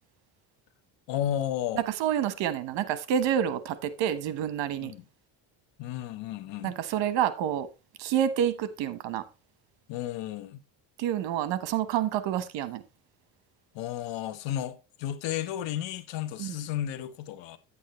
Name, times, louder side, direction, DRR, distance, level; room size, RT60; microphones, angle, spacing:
voice 1, 1.1-1.8 4.8-5.0 5.8-6.8 9.9-10.6 13.7-17.6, left 11 dB, 65° left, 1.2 m, -33 dB
voice 2, 2.0-4.9 6.6-7.7 8.0-9.2 11.0-12.8 16.4-16.6, right 10 dB, 70° right, 1.2 m, -28 dB
9.2 x 8.5 x 3.1 m
cardioid pair, 120°, 46 cm